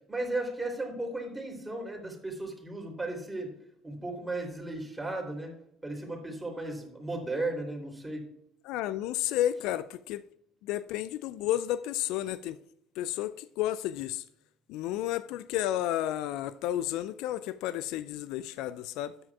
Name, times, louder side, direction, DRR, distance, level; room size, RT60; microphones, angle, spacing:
voice 1, 0.1-3.5 3.8-5.5 5.8-8.2, right 2 dB, 10° right, 3.2 m, -35 dB
voice 2, 8.6-10.2 10.6-12.6 13.0-14.2 14.7-19.1, left 13 dB, 65° left, 0.3 m, -32 dB
13.0 x 9.8 x 2.4 m
figure-of-eight pair, 60°, 0 cm